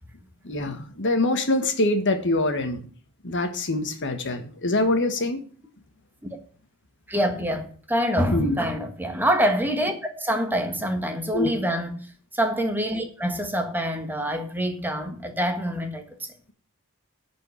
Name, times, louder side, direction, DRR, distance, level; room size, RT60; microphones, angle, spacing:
voice 1, 0.4-2.8 3.2-5.4 8.3-8.6 11.3-11.5, left 2 dB, 55° left, 1.5 m, -24 dB
voice 2, 7.1-11.9 12.3-16.3, equal, 10° right, 1.5 m, -26 dB
11.0 x 5.1 x 8.4 m
head